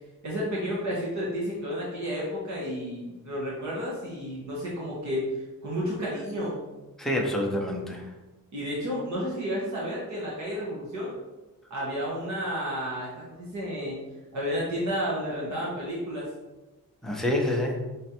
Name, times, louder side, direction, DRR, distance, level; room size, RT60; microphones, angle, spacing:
voice 1, 0.2-5.3 5.6-6.6 8.5-11.1 11.7-14.0 14.3-16.3, equal, 55° right, -6 dB, 1.2 m, -31 dB
voice 2, 7.0-8.1 17.0-17.9, left 1 dB, ahead, 0 dB, 0.5 m, -27 dB
5.1 x 3.2 x 2.9 m, 1.1 s
wide cardioid pair, 180°, 35 cm